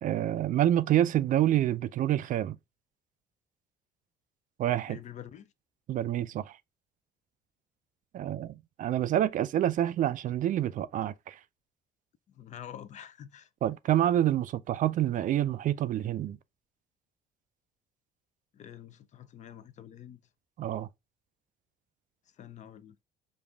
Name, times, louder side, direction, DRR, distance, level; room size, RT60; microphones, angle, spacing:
voice 1, 0.0-2.6 4.6-5.0 5.9-6.6 8.1-11.4 13.6-16.4 20.6-20.9, right 12 dB, 50° right, 0.4 m, -27 dB
voice 2, 4.9-5.5 12.3-13.5 18.5-20.2 22.4-23.0, left 10 dB, 45° left, 0.5 m, -47 dB
5.2 x 2.4 x 3.3 m
cardioid pair, 110°, 17 cm